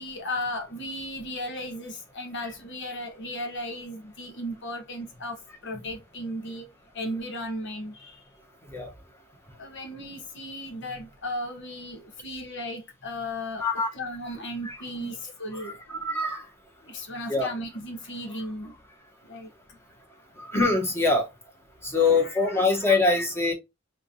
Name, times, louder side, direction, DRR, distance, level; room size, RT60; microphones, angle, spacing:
voice 1, 0.0-6.7 6.9-8.2 9.6-16.2 16.8-18.8 19.2-19.5 21.9-22.9, left 1 dB, 60° left, 1.3 m, -36 dB
voice 2, 14.7-15.1 16.0-16.4 17.3-17.5 20.4-21.2 21.8-23.5, left 3 dB, 10° left, 1.2 m, -24 dB
3.7 x 3.6 x 2.7 m
head